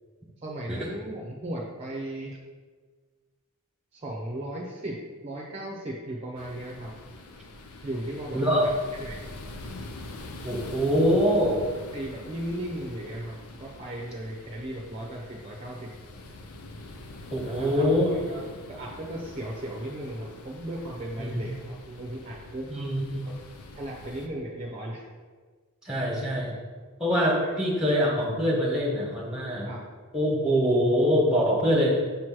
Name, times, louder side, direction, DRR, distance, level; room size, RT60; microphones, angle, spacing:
voice 1, 0.4-2.4 3.9-7.0 7.8-9.3 11.9-15.9 17.5-18.4 18.7-22.7 23.2-23.3 23.7-25.0 27.4-27.6 29.6-29.9, right 1 dB, 30° right, -3 dB, 0.7 m, -36 dB
sound 1, 6.4-24.3, left 2 dB, 75° left, 0.7 m, -44 dB
voice 2, 8.3-8.7 10.4-11.6 17.3-18.1 21.2-21.4 22.7-23.2 25.8-26.5 27.0-29.7 30.1-32.0, equal, 5° right, -3 dB, 1.4 m, -24 dB
6.9 x 3.1 x 6.0 m, 1.5 s
head